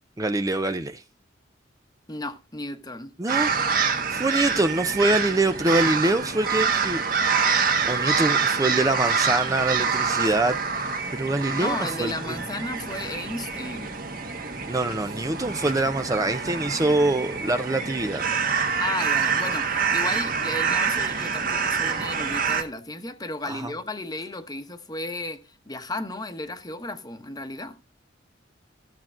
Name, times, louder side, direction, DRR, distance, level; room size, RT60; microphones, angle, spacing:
voice 1, 0.2-1.0 3.2-3.6 4.1-7.0 7.4-12.4 14.7-18.2 23.4-23.7, right 2 dB, 20° right, 0.5 m, -25 dB
voice 2, 2.1-3.1 11.6-13.9 18.8-25.4 25.7-27.8, left 2 dB, 20° left, 1.0 m, -34 dB
sound 1, 3.3-22.6, right 6 dB, 50° right, 1.4 m, -26 dB
14.5 x 7.4 x 2.4 m
head